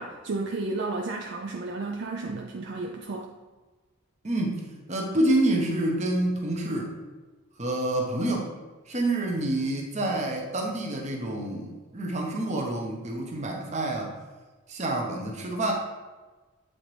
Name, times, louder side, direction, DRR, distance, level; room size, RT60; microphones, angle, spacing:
voice 1, 0.0-3.3, right 3 dB, 50° right, 1 dB, 0.4 m, -32 dB
voice 2, 4.2-6.9 7.6-8.5 8.9-14.1 14.7-15.7, right 1 dB, 30° right, 0 dB, 0.8 m, -28 dB
7.6 x 3.9 x 3.2 m, 1.3 s
head